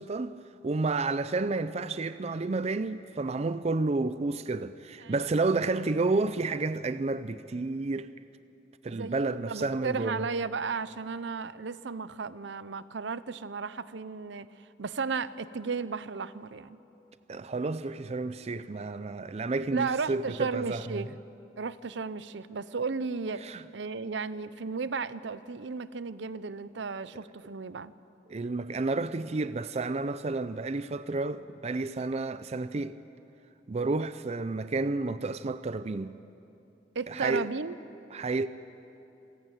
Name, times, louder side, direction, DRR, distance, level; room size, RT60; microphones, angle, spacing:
voice 1, 0.0-8.1 8.8-10.3 17.3-21.0 23.4-23.6 28.3-33.0 33.7-36.2 37.1-37.5 38.1-38.5, right 3 dB, 35° right, 0.4 m, -31 dB
voice 2, 8.9-16.8 19.7-21.1 21.6-27.9 36.9-37.8, right 4 dB, 70° right, 0.7 m, -34 dB
27.5 x 15.5 x 9.0 m
head